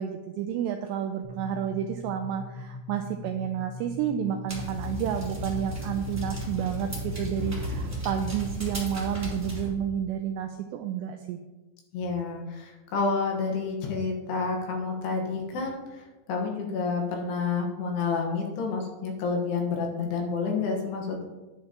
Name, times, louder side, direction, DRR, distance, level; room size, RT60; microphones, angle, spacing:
voice 1, 0.0-11.4, right 9 dB, 85° right, 5 dB, 2.4 m, -30 dB
sound 1, 1.2-8.8, left 3 dB, 35° right, 1.4 m, -41 dB
sound 2, 4.5-9.7, equal, 5° right, 2.1 m, -34 dB
voice 2, 11.9-21.3, left 4 dB, 70° left, 0 dB, 3.1 m, -29 dB
11.0 x 9.8 x 2.9 m, 1.2 s
omnidirectional pair, 5.4 m